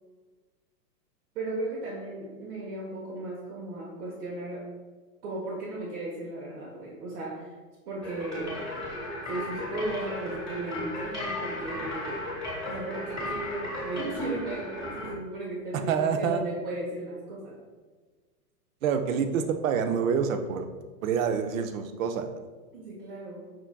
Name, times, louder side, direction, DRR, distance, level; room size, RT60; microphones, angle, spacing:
voice 1, 1.3-4.7 5.2-7.5 7.9-8.7 9.2-12.2 12.7-17.6 22.7-23.5, right 2 dB, 80° right, -4 dB, 1.2 m, -36 dB
sound 1, 8.0-15.1, left 1 dB, ahead, 1.2 m, -35 dB
voice 2, 15.9-16.4 18.8-20.7 21.0-22.4, right 7 dB, 60° right, 7 dB, 0.5 m, -27 dB
5.9 x 3.7 x 2.2 m, 1.3 s
supercardioid pair, 175°, 46 cm